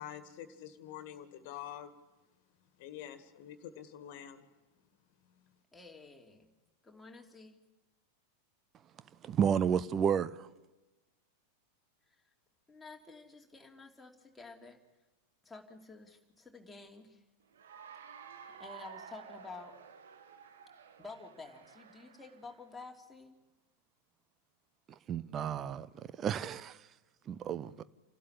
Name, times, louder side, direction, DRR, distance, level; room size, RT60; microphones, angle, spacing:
voice 1, 0.0-1.9 2.8-4.4, left 10 dB, 50° left, 2.0 m, -46 dB
voice 2, 5.7-6.5 6.8-7.6 12.1-12.2 12.7-14.8 15.4-17.2 18.6-19.7 21.0-23.3, left 3 dB, 10° left, 2.9 m, -51 dB
voice 3, 9.2-10.5 25.1-25.9 26.2-26.8 27.3-27.8, right 8 dB, 30° right, 0.8 m, -31 dB
Cheering / Applause, 17.5-22.7, right 7 dB, 65° right, 1.6 m, -52 dB
28.5 x 12.5 x 10.0 m
figure-of-eight pair, 90°, 0 cm